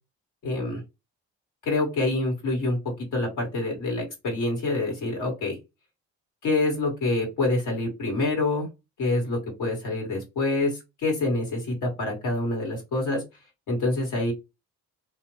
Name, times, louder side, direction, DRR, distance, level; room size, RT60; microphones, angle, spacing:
voice 1, 0.4-0.8 1.6-5.6 6.4-8.7 9.0-13.2 13.7-14.3, left 2 dB, 90° left, -1 dB, 1.8 m, -26 dB
2.8 x 2.1 x 3.1 m, 0.23 s
cardioid pair, 90°, 30 cm